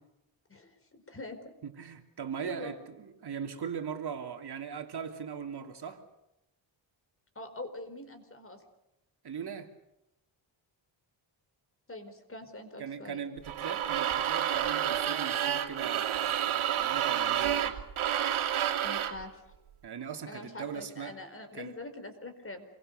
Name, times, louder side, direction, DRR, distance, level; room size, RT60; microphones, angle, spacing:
voice 1, 1.0-1.5 2.4-2.7 7.3-8.6 11.9-13.2 18.8-19.4 20.3-22.7, left 2 dB, 25° left, 4.7 m, -44 dB
voice 2, 1.6-6.0 9.2-9.7 12.8-17.8 19.8-21.2 21.5-21.8, right 7 dB, 55° right, 3.1 m, -40 dB
sound 1, 13.5-19.2, right 10 dB, 85° right, 2.7 m, -29 dB
28.0 x 23.5 x 6.8 m
wide cardioid pair, 130°, 48 cm